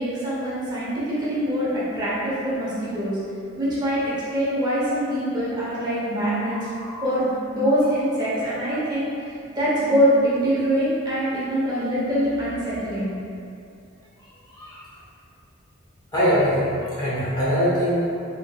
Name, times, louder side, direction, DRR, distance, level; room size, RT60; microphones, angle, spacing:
voice 1, 0.0-3.2 3.6-6.6 7.0-13.1, equal, 20° right, -10 dB, 0.8 m, -24 dB
voice 2, 6.4-7.0 14.5-14.8 16.1-18.1, equal, 20° left, -10 dB, 0.8 m, -23 dB
3.6 x 3.3 x 2.2 m, 2.5 s
head